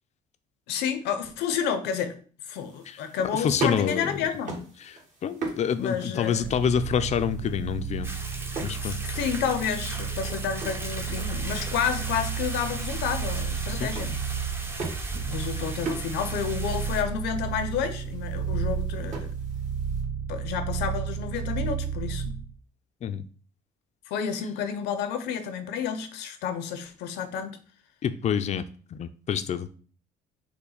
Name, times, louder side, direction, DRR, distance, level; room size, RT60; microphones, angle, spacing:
voice 1, 0.7-2.2 2.5-4.7 5.8-6.4 8.8-14.3 15.3-19.3 20.3-22.3 24.1-27.6, left 7 dB, 85° left, 9 dB, 0.7 m, -30 dB
sound 1, 2.5-20.0, right 3 dB, 45° right, 1.6 m, -41 dB
voice 2, 2.9-4.2 4.8-8.1 8.6-9.0 13.7-13.9 15.5-15.6 23.0-23.2 28.0-28.6 28.9-29.7, left 7 dB, 40° left, 11 dB, 0.4 m, -28 dB
sound 2, 6.4-22.5, right 7 dB, 70° right, 0.8 m, -32 dB
sound 3, 8.0-17.0, right 2 dB, 15° right, 0.7 m, -38 dB
5.8 x 2.2 x 4.0 m, 0.41 s
cardioid pair, 110°, 17 cm